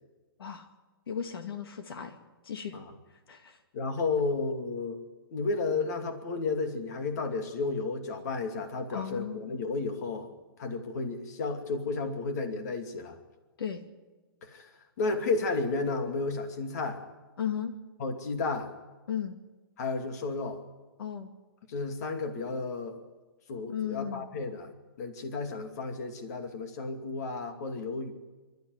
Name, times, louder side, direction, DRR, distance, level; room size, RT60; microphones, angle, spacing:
voice 1, 1.1-2.2 2.4-2.7 3.3-3.6 8.9-9.4 13.6-13.8 17.4-17.7 19.1-19.4 21.0-21.3 23.7-24.2, left 8 dB, 80° left, 7 dB, 2.2 m, -35 dB
voice 2, 3.7-5.0 5.3-10.3 10.6-13.2 14.4-17.0 18.0-18.7 19.8-20.6 21.7-23.1 23.5-28.1, left 3 dB, 45° left, 6 dB, 2.6 m, -32 dB
26.0 x 13.5 x 9.6 m, 1.2 s
hypercardioid pair, 165°, 12 cm